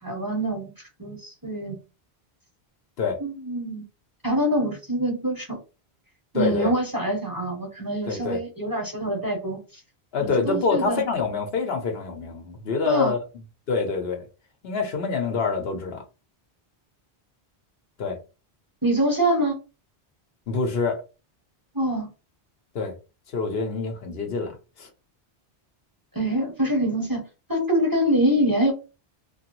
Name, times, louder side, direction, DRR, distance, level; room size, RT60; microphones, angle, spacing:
voice 1, 0.0-0.7 1.0-1.8 3.2-3.8 4.2-5.6 6.3-9.6 10.2-11.0 12.8-13.1 18.8-19.6 21.7-22.1 26.1-27.2 27.5-28.7, right 1 dB, 20° right, 0.9 m, -25 dB
voice 2, 6.3-6.7 8.1-8.4 10.1-13.2 13.7-14.3 14.6-16.0 18.0-18.2 20.5-21.0 22.7-22.9 23.3-24.9, left 4 dB, 75° left, 1.0 m, -26 dB
3.0 x 2.3 x 3.0 m
omnidirectional pair, 1.0 m